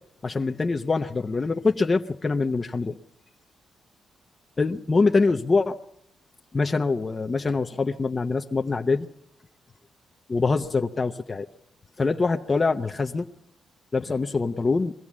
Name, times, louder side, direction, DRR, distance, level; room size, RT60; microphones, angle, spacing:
voice 1, 0.2-3.0 4.6-5.8 6.5-9.1 10.3-11.5 12.0-13.3 13.9-14.9, left 4 dB, 30° left, 5 dB, 0.7 m, -24 dB
23.0 x 15.5 x 7.4 m, 0.80 s
cardioid pair, 115°, 0 cm